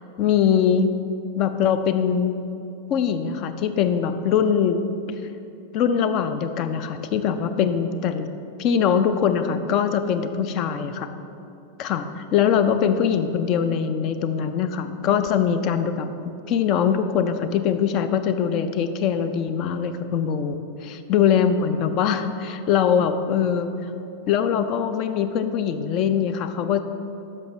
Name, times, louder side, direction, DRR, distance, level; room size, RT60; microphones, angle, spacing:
voice 1, 0.2-0.9 1.4-2.4 2.9-4.8 5.7-8.3 8.6-11.1 11.8-16.1 16.5-23.7 24.3-26.8, left 8 dB, 40° left, 10 dB, 0.4 m, -22 dB
10.5 x 6.4 x 3.1 m, 2.8 s
figure-of-eight pair, 90°, 0 cm